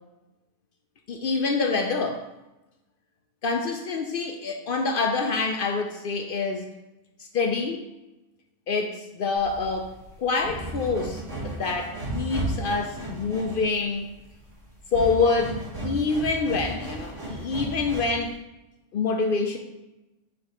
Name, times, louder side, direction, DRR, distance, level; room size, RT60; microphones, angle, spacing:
voice 1, 1.1-2.2 3.4-6.7 7.2-7.8 8.7-14.1 14.9-18.3 18.9-19.6, left 4 dB, 60° left, 4 dB, 0.6 m, -26 dB
sound 1, 9.4-18.3, right 2 dB, 75° right, 2.1 m, -35 dB
4.6 x 4.2 x 4.9 m, 1.0 s
omnidirectional pair, 1.3 m